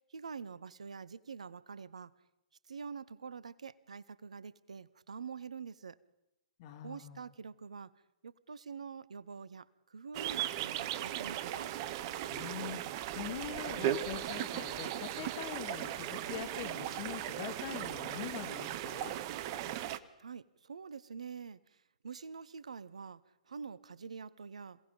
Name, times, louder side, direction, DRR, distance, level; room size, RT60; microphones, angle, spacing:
voice 1, 0.1-2.1 2.7-6.0 6.8-7.9 8.2-11.7 20.2-23.2 23.5-24.8, right 5 dB, 65° right, 20 dB, 0.9 m, -46 dB
voice 2, 6.6-7.3 12.3-19.2, left 10 dB, 40° left, 8 dB, 2.7 m, -43 dB
sound 1, 10.1-20.0, right 12 dB, 40° right, 1.1 m, -37 dB
27.5 x 18.0 x 5.4 m, 0.88 s
figure-of-eight pair, 115°, 4 cm